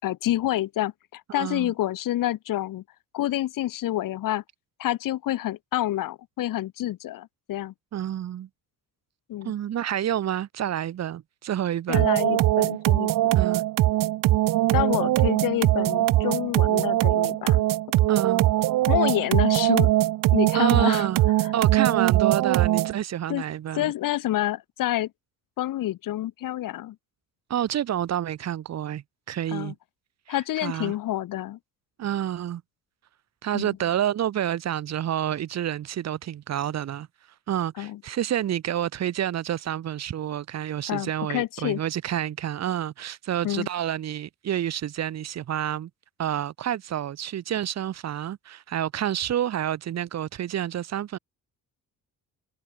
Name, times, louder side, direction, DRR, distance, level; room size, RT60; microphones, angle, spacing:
voice 1, 0.0-2.8 3.1-4.4 4.8-7.7 9.3-9.5 11.9-13.4 14.7-17.6 18.9-19.9 20.3-21.1 23.3-23.4 23.8-25.1 25.6-27.0 29.5-29.7 30.3-31.6 33.5-33.8 37.8-38.0 40.9-41.8 43.4-43.7, left 14 dB, 80° left, 5.6 m, -28 dB
voice 2, 1.3-1.7 7.9-8.5 9.4-12.1 13.3-13.6 18.1-18.5 20.5-21.2 21.5-23.9 27.5-29.8 30.3-30.9 32.0-32.6 33.4-37.1 37.5-45.9 46.2-51.2, right 11 dB, 55° right, 2.0 m, -29 dB
sound 1, 11.9-23.0, right 15 dB, 85° right, 1.8 m, -21 dB
cardioid pair, 150°, 32 cm